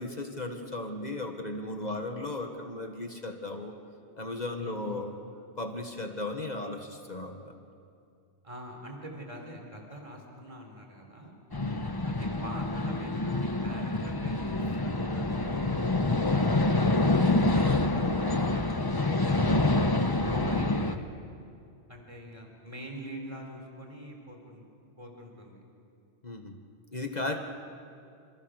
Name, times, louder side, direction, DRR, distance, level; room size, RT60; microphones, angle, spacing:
voice 1, 0.0-3.8 4.2-5.1 5.6-7.5 11.6-11.9 26.2-26.6 26.9-27.4, left 2 dB, 40° left, 4 dB, 1.7 m, -36 dB
voice 2, 8.4-11.4 12.0-16.5 17.2-19.5 20.3-21.1 21.3-21.4 21.9-24.7 25.0-25.6 27.4-27.5, right 1 dB, 30° right, 2 dB, 4.1 m, -44 dB
sound 1, 11.5-21.0, left 2 dB, 20° left, 1.0 m, -27 dB
28.0 x 28.0 x 6.5 m, 2.5 s
omnidirectional pair, 1.2 m